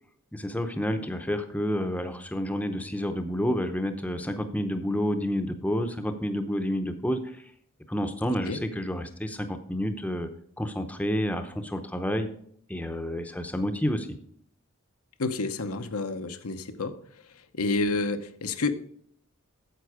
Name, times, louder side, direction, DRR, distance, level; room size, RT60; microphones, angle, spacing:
voice 1, 0.3-7.4 7.9-10.3 10.6-12.3 12.7-14.1, equal, 5° left, 7 dB, 0.7 m, -29 dB
voice 2, 15.2-17.0 17.5-18.7, left 3 dB, 85° left, 8 dB, 0.9 m, -29 dB
9.3 x 7.5 x 4.8 m, 0.63 s
head